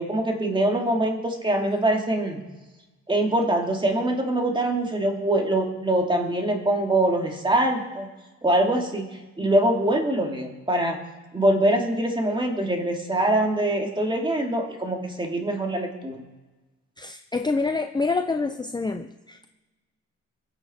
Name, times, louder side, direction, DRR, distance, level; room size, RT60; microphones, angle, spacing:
voice 1, 0.0-2.5 3.1-8.1 8.4-11.0 11.3-16.2, right 1 dB, 15° right, 2 dB, 2.7 m, -24 dB
voice 2, 17.0-19.5, left 3 dB, 15° left, 7 dB, 0.6 m, -27 dB
22.0 x 8.2 x 4.5 m, 1.2 s
cardioid pair, 90°, 30 cm